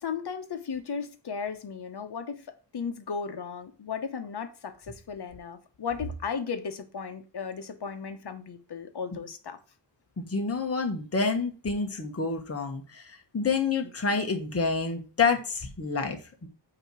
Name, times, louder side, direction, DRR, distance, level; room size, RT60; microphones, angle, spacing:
voice 1, 0.0-2.4 2.7-9.6, left 6 dB, 65° left, 1.0 m, -35 dB
voice 2, 10.2-16.5, left 4 dB, 35° left, 1.2 m, -28 dB
8.7 x 3.0 x 6.1 m
wide cardioid pair, 135°, 42 cm